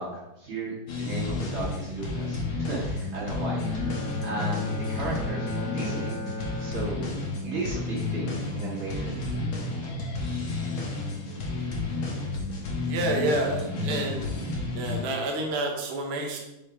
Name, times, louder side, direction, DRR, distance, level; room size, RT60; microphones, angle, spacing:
voice 1, 0.0-4.0 4.2-4.6 4.9-6.2 6.6-7.1 7.4-9.2, right 2 dB, 80° right, -6 dB, 3.3 m, -35 dB
sound 1, 0.9-15.1, left 3 dB, 85° left, 2.1 m, -31 dB
Bowed string instrument, 3.6-7.7, left 1 dB, 60° left, 1.5 m, -36 dB
voice 2, 12.9-14.4 14.7-16.4, right 2 dB, 40° right, 1 dB, 1.0 m, -29 dB
6.4 x 5.1 x 4.2 m, 0.94 s
omnidirectional pair, 2.2 m